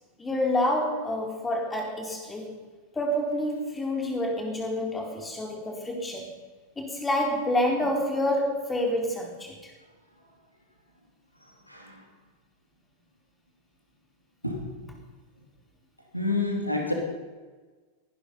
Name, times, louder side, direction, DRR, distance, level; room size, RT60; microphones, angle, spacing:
voice 1, 0.2-2.6 2.9-6.4 6.8-9.7, left 1 dB, 15° left, 1 dB, 3.9 m, -28 dB
voice 2, 11.7-12.0 14.4-14.6 16.1-16.9, left 2 dB, 90° left, 1 dB, 2.9 m, -28 dB
22.0 x 11.0 x 5.5 m, 1.4 s
figure-of-eight pair, 90°, 0 cm